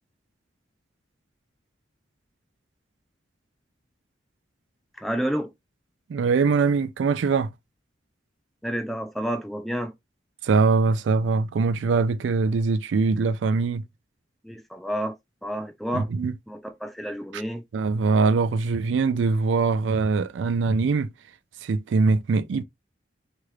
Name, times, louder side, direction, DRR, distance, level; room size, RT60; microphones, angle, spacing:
voice 1, 5.0-5.5 8.6-9.9 14.4-15.2 15.4-16.1 16.5-17.6, equal, ahead, 0.3 m, -30 dB
voice 2, 6.1-7.5 10.4-13.9 15.9-16.3 17.3-17.4 17.7-21.1 21.6-22.6, right 4 dB, 80° right, 0.3 m, -22 dB
2.9 x 2.4 x 3.1 m
head